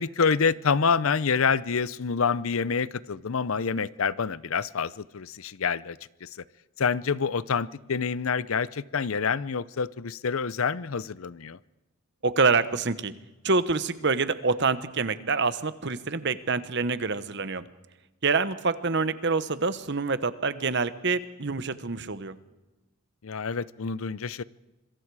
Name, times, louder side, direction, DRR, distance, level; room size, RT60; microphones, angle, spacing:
voice 1, 0.0-6.3 6.8-11.6 23.2-24.4, left 5 dB, 75° left, 19 dB, 0.6 m, -27 dB
voice 2, 12.2-13.1 13.4-17.6 18.2-22.4, right 4 dB, 55° right, 13 dB, 1.1 m, -26 dB
26.5 x 22.5 x 4.8 m, 1.0 s
head